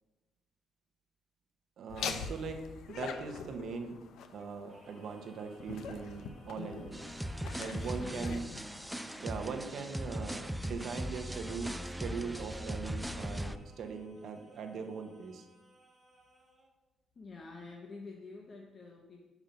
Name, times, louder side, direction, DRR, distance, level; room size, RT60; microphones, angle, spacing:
voice 1, 1.8-2.6 2.9-4.0 4.3-7.0 7.6-8.4 9.2-15.5, right 5 dB, 65° right, 5 dB, 0.8 m, -40 dB
Laughter, 1.9-9.5, left 6 dB, 80° left, 0.5 m, -44 dB
Singing, 4.7-16.8, right 1 dB, 20° right, 1.4 m, -63 dB
sound 1, 6.9-13.6, equal, 5° right, 0.3 m, -39 dB
voice 2, 7.6-8.7 17.1-19.2, left 3 dB, 45° left, 1 dB, 0.8 m, -48 dB
5.3 x 4.7 x 5.7 m, 1.1 s
cardioid pair, 90°, 0 cm